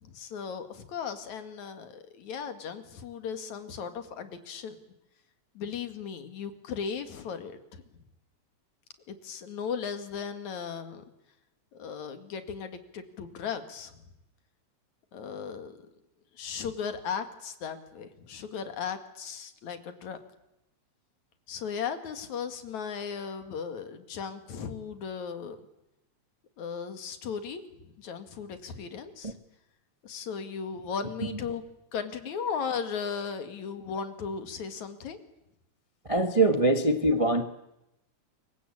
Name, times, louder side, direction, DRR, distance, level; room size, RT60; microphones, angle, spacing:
voice 1, 0.0-4.8 5.6-7.8 9.1-11.0 11.7-13.9 15.1-15.8 16.3-20.2 21.5-25.6 26.6-29.4 30.0-31.6 31.9-35.2, left 6 dB, 80° left, 9 dB, 3.5 m, -36 dB
voice 2, 36.1-37.4, right 2 dB, 25° right, 8 dB, 0.6 m, -23 dB
28.0 x 23.5 x 8.7 m, 0.89 s
omnidirectional pair, 3.3 m